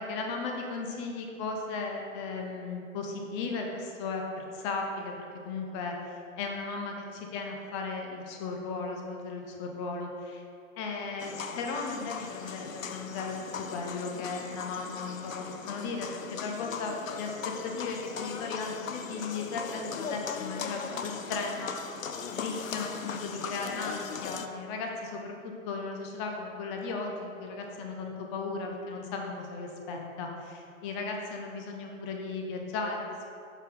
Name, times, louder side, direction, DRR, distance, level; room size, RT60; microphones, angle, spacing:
voice 1, 0.0-10.4 10.8-13.4 13.7-17.4 17.6-21.7 22.3-33.3, left 4 dB, 20° left, 2 dB, 0.8 m, -36 dB
sound 1, 11.2-24.5, left 6 dB, 70° left, 0.6 m, -39 dB
8.2 x 5.7 x 3.6 m, 2.5 s
figure-of-eight pair, 120°, 41 cm